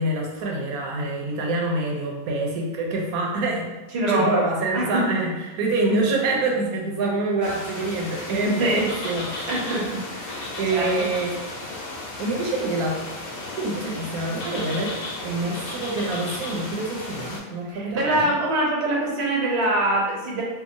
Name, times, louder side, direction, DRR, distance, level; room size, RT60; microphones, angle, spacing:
voice 1, 0.0-3.7 4.1-9.5 10.6-11.4 12.2-13.0 13.5-18.3, right 2 dB, 85° right, -1 dB, 1.1 m, -26 dB
voice 2, 3.9-4.4 4.7-5.0 8.4-8.8 9.5-11.1 17.7-20.4, right 1 dB, 55° right, -3 dB, 0.8 m, -24 dB
sound 1, 7.4-17.4, left 2 dB, 75° left, 1.1 m, -34 dB
2.8 x 2.4 x 2.5 m, 1.1 s
omnidirectional pair, 1.5 m